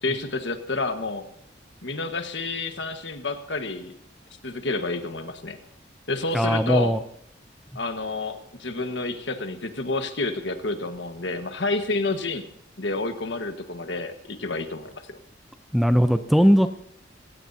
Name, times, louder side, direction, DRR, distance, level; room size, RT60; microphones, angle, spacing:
voice 1, 0.0-1.2 1.8-4.0 4.4-5.6 6.1-6.9 7.7-12.5 12.8-15.2, left 3 dB, 75° left, 7 dB, 1.5 m, -29 dB
voice 2, 6.3-7.0 15.7-16.7, equal, ahead, 9 dB, 0.5 m, -19 dB
25.5 x 16.5 x 2.8 m, 0.71 s
head